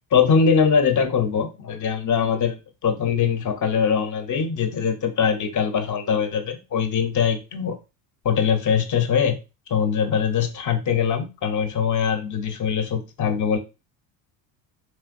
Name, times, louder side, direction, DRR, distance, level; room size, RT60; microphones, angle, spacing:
voice 1, 0.1-7.8 8.2-9.4 9.7-13.6, left 6 dB, 40° left, 6 dB, 0.8 m, -22 dB
3.4 x 2.8 x 2.5 m, 0.28 s
hypercardioid pair, 75°, 49 cm